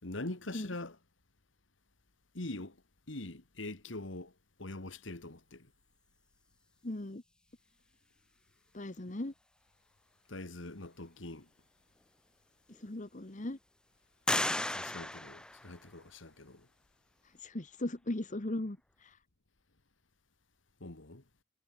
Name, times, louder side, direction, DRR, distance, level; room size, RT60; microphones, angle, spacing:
voice 1, 0.0-1.0 2.3-2.8 3.1-4.3 4.6-5.7 10.3-11.5 14.6-16.7 20.8-21.2, left 2 dB, 70° left, 2.3 m, -43 dB
voice 2, 6.8-7.2 8.7-9.3 12.7-13.6 17.2-19.2, left 1 dB, 40° left, 1.3 m, -38 dB
sound 1, 12.0-12.1 12.7-13.3 14.3-16.2, left 1 dB, 5° left, 0.3 m, -35 dB
head